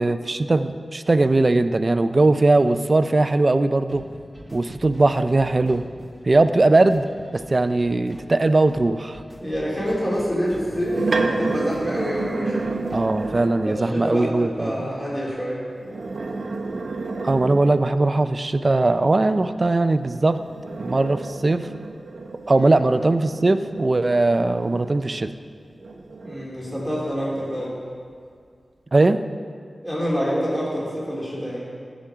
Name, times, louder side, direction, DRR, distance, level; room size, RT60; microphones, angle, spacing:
voice 1, 0.0-4.1 4.5-5.8 6.2-7.1 7.3-9.2 12.9-14.9 17.2-20.4 20.8-21.7 22.5-25.3 28.9-29.2, right 2 dB, 40° right, 11 dB, 0.4 m, -20 dB
sound 1, 3.9-13.5, equal, 15° right, 1.4 m, -45 dB
voice 2, 9.4-12.7 13.6-15.6 22.5-22.8 26.2-27.8 29.8-31.6, equal, 15° left, -6 dB, 2.9 m, -27 dB
sound 2, 10.5-13.8 15.8-18.1 20.1-25.3 25.8-27.6, right 3 dB, 75° right, 0.7 m, -31 dB
15.0 x 5.1 x 5.7 m, 2.1 s
wide cardioid pair, 70°, 0 cm